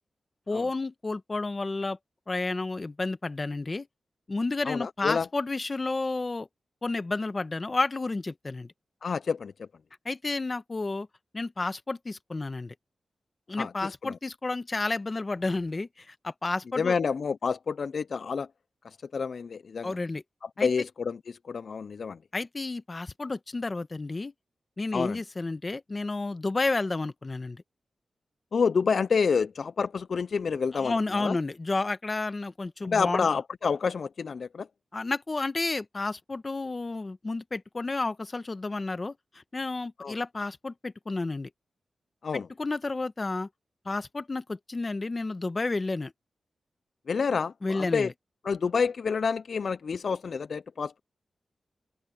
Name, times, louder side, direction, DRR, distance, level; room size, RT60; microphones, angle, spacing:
voice 1, 0.5-2.0 2.3-3.9 4.3-6.5 6.8-8.7 10.0-11.1 11.3-12.7 13.5-17.0 19.8-20.2 20.6-20.7 22.3-24.3 24.8-27.6 30.7-33.3 34.9-41.5 42.3-43.5 43.8-46.1 47.6-48.1, left 3 dB, 30° left, 1.0 m, -31 dB
voice 2, 4.7-5.3 9.0-9.5 13.6-14.2 16.8-18.5 19.1-20.0 20.6-22.2 24.9-25.2 28.5-31.4 32.8-34.7 40.0-40.2 42.2-42.5 47.1-48.1 48.4-51.0, left 5 dB, 60° left, 0.3 m, -28 dB
wide cardioid pair, 140°, 0 cm